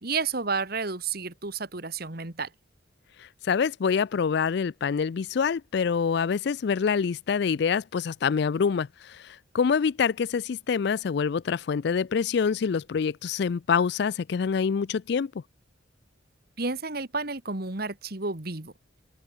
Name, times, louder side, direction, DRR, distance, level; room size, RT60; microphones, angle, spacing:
voice 1, 0.0-2.5 16.6-18.7, right 4 dB, 50° right, 1.9 m, -31 dB
voice 2, 3.2-15.3, left 6 dB, 55° left, 0.4 m, -26 dB
open air
head